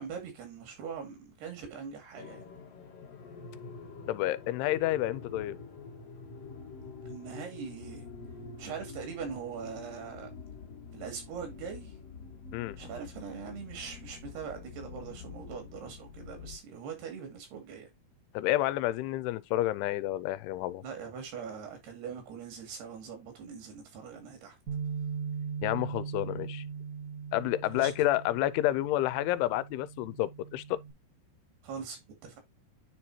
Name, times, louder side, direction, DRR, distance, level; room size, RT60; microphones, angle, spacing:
voice 1, 0.0-2.4 7.1-8.1 8.6-10.3 10.9-11.9 12.8-17.9 20.8-24.6 27.7-27.9 31.6-32.4, right 6 dB, 80° right, 4.3 m, -42 dB
sound 1, 2.1-16.6, left 5 dB, 55° left, 1.9 m, -46 dB
voice 2, 4.1-5.6 12.5-12.8 18.3-20.8 25.6-26.6 27.3-30.8, left 15 dB, 85° left, 2.6 m, -29 dB
Bass guitar, 24.7-30.9, right 6 dB, 40° right, 1.3 m, -39 dB
9.8 x 4.4 x 2.8 m
omnidirectional pair, 4.6 m